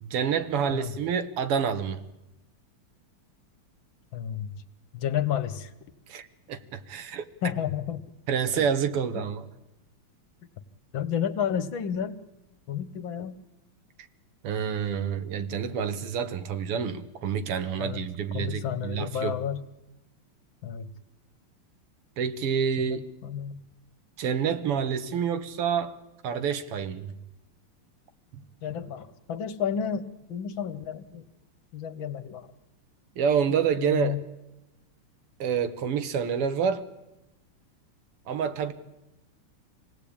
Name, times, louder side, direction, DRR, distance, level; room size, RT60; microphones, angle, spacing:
voice 1, 0.0-2.0 6.1-7.3 8.3-9.5 14.4-19.3 22.2-23.0 24.2-26.0 26.2-27.1 33.2-34.2 35.4-36.8 38.3-38.7, right 7 dB, 90° right, 2.2 m, -28 dB
voice 2, 4.1-4.6 4.9-5.7 7.4-8.1 8.5-8.6 10.9-12.2 12.7-13.4 17.8-18.0 18.3-19.6 20.6-20.9 22.8-23.6 28.6-31.2 31.7-32.5 33.8-34.2, left 9 dB, 65° left, 1.8 m, -31 dB
26.5 x 17.5 x 8.7 m
omnidirectional pair, 2.4 m